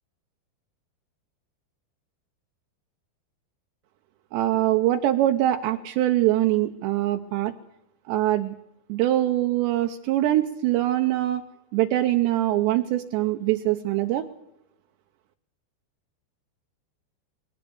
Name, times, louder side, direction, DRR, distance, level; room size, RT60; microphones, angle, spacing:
voice 1, 4.3-7.5 8.1-8.5 8.9-11.4 11.7-14.2, right 14 dB, 80° right, 5 dB, 2.9 m, -23 dB
21.0 x 17.5 x 7.0 m, 0.86 s
omnidirectional pair, 5.2 m